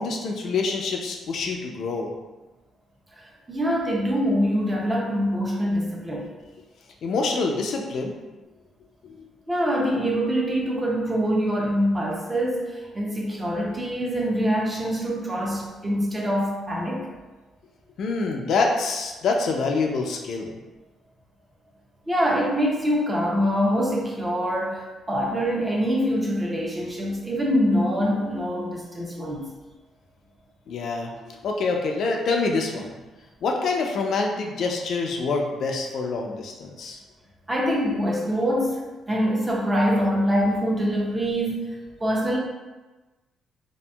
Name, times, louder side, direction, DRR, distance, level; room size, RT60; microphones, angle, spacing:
voice 1, 0.0-2.1 7.0-8.1 9.0-9.2 18.0-20.5 30.7-33.0 33.4-37.0, left 3 dB, 60° left, 1 dB, 0.3 m, -26 dB
voice 2, 3.2-6.3 9.5-17.1 22.1-29.5 37.5-42.4, equal, 15° right, -2 dB, 0.5 m, -24 dB
2.7 x 2.4 x 2.2 m, 1.2 s
cardioid pair, 130°, 0 cm